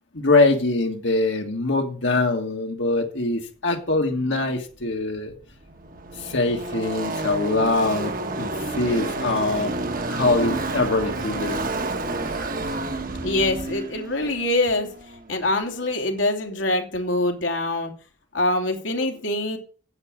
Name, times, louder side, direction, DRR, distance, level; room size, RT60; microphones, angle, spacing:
voice 1, 0.1-5.3 6.1-9.7 10.0-11.6, left 2 dB, 75° left, 2 dB, 1.7 m, -23 dB
Car passing by / Race car auto racing, 4.9-5.0 5.2-15.8, right 2 dB, 50° right, 1.2 m, -30 dB
voice 2, 13.2-14.9 15.3-17.9 18.3-19.6, left 2 dB, 90° left, 3 dB, 2.8 m, -24 dB
9.6 x 8.5 x 6.3 m, 0.39 s
head